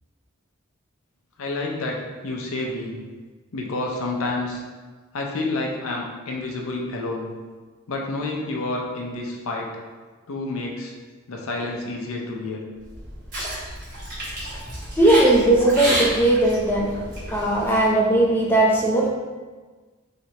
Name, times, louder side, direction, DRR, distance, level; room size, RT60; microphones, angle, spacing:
voice 1, 1.4-3.0 3.5-4.6 5.1-7.3 7.9-9.7 10.3-11.0 11.3-12.6, left 2 dB, 70° left, -1 dB, 0.6 m, -29 dB
sound 1, 12.8-17.9, right 1 dB, 35° right, 1.3 m, -30 dB
voice 2, 15.0-16.9 17.3-19.1, right 1 dB, 10° left, -3 dB, 0.4 m, -18 dB
3.3 x 3.0 x 2.8 m, 1.4 s
head